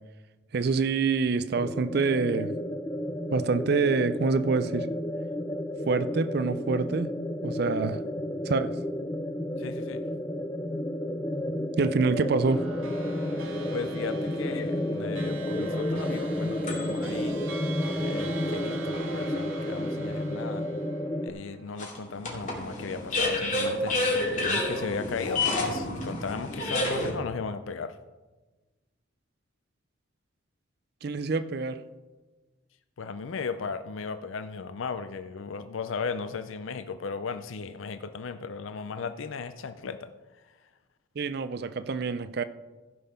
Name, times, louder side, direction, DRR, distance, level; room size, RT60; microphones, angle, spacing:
voice 1, 0.5-2.6 3.3-4.9 5.9-7.1 7.4-8.0 8.5-8.7 11.8-12.7 31.0-31.8 41.2-42.4, right 4 dB, 50° right, 0.4 m, -26 dB
sound 1, 1.6-21.3, left 1 dB, 15° left, 0.4 m, -31 dB
voice 2, 9.6-10.0 13.7-17.5 18.0-18.8 19.1-20.7 21.2-24.0 24.3-28.0 33.0-40.1, left 5 dB, 75° left, 0.5 m, -36 dB
sound 2, 12.4-22.1, right 4 dB, 85° right, 1.7 m, -43 dB
sound 3, 15.5-17.2 17.9-18.0 21.8-27.1, left 2 dB, 40° left, 2.6 m, -30 dB
15.5 x 5.5 x 5.7 m
head